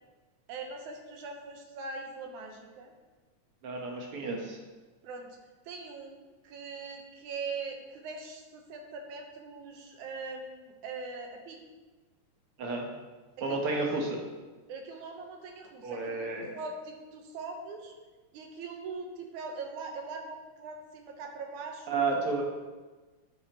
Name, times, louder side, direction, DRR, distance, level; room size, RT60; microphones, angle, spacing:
voice 1, 0.5-2.9 5.0-5.4 5.7-11.6 13.4-13.8 14.7-17.9 18.3-21.9, right 4 dB, 85° right, 3 dB, 2.5 m, -41 dB
voice 2, 3.6-4.6 12.6-12.9 13.4-14.2 15.8-16.6 21.9-22.4, right 3 dB, 55° right, 0 dB, 1.9 m, -31 dB
10.5 x 7.9 x 3.1 m, 1.3 s
omnidirectional pair, 3.3 m